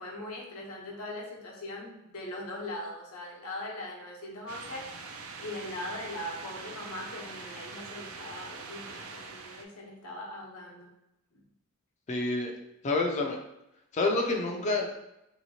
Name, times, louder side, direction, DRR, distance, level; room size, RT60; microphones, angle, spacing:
voice 1, 0.0-10.9 11.3-11.4, left 1 dB, 85° left, -2 dB, 0.9 m, -40 dB
sound 1, 4.5-9.6, right 4 dB, 70° right, 0.4 m, -43 dB
voice 2, 12.1-12.5 12.8-13.4 13.9-14.9, left 2 dB, 35° left, 1 dB, 0.4 m, -28 dB
3.1 x 2.8 x 2.8 m, 0.88 s
head